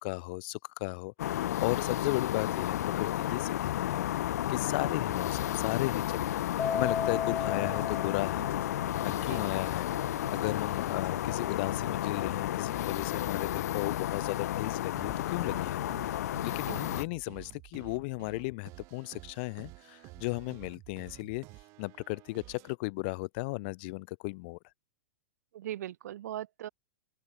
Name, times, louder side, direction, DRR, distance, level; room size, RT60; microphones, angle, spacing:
voice 1, 0.0-4.1 4.5-6.2 6.5-8.5 9.0-9.9 10.3-15.8 16.4-21.4 21.8-24.6, left 27 dB, 40° left, 1.0 m, -35 dB
sound 1, 1.2-17.1, left 13 dB, 65° left, 0.6 m, -32 dB
sound 2, 4.7-10.5 10.8-14.3 15.0-22.8, right 24 dB, 30° right, 2.9 m, -51 dB
Keyboard (musical), 6.6-9.1, left 7 dB, 10° left, 0.5 m, -34 dB
voice 2, 25.5-26.7, right 12 dB, 70° right, 0.8 m, -39 dB
open air
supercardioid pair, 170°, 9 cm